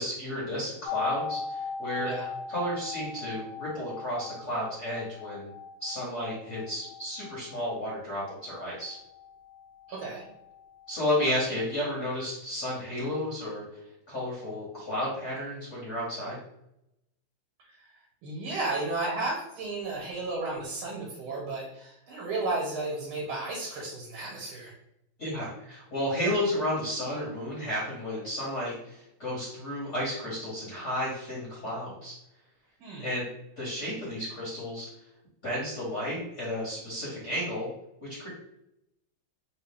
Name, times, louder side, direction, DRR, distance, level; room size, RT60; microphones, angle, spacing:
voice 1, 0.0-2.1 2.5-5.5 5.8-9.0 10.9-13.6 14.1-16.4 25.2-32.1 33.0-33.3 33.6-34.9 35.4-37.7 38.0-38.3, left 1 dB, 45° left, -6 dB, 1.2 m, -32 dB
sound 1, 0.8-10.6 10.9-11.0, left 5 dB, 85° left, 1.5 m, -39 dB
voice 2, 9.9-10.2 18.2-24.7 32.8-33.1, right 2 dB, 85° right, -3 dB, 1.8 m, -33 dB
3.7 x 2.5 x 3.5 m, 0.82 s
omnidirectional pair, 2.3 m